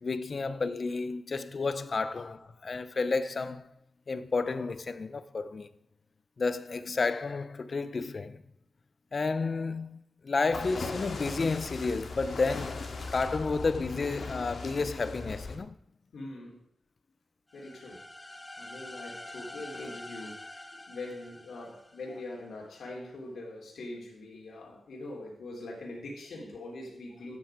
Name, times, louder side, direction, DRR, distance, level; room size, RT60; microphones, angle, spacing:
voice 1, 0.0-3.7 4.1-5.7 6.4-8.4 9.1-15.8, left 4 dB, 45° left, 0.9 m, -31 dB
sound 1, 10.5-15.6, left 3 dB, 60° left, 2.6 m, -39 dB
voice 2, 16.1-16.6 17.5-18.1 18.6-27.4, left 2 dB, 75° left, 3.6 m, -43 dB
sound 2, 17.5-22.3, left 1 dB, 15° left, 1.4 m, -46 dB
13.5 x 9.7 x 5.1 m
wide cardioid pair, 100°, 0 cm